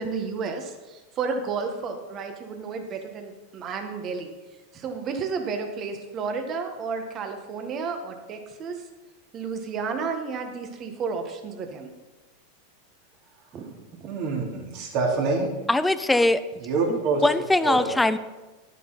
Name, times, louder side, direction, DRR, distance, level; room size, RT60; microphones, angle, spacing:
voice 1, 0.0-4.3 4.7-8.8 9.3-11.9 13.5-14.1, right 5 dB, 40° right, 5 dB, 1.5 m, -32 dB
voice 2, 14.0-15.5 16.6-17.2 17.6-17.9, right 4 dB, 55° right, -2 dB, 3.1 m, -26 dB
voice 3, 15.7-16.4 16.9-18.2, left 2 dB, 10° left, 13 dB, 0.5 m, -22 dB
10.5 x 9.1 x 4.1 m, 1.1 s
hypercardioid pair, 105°, 0 cm